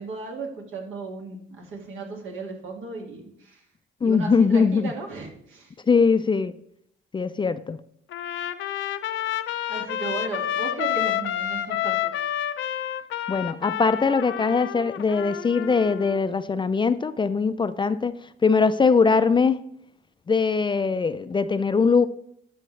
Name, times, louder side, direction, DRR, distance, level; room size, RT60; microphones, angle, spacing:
voice 1, 0.0-3.6 4.0-5.7 9.7-12.1, right 4 dB, 80° right, 1 dB, 2.0 m, -35 dB
voice 2, 4.0-4.9 5.9-6.5 7.1-7.8 13.3-18.1 18.4-19.6 20.3-22.1, left 5 dB, 25° left, 13 dB, 0.4 m, -21 dB
Trumpet, 8.1-16.2, left 11 dB, 80° left, 0.6 m, -29 dB
12.0 x 5.6 x 3.2 m, 0.71 s
cardioid pair, 90°, 20 cm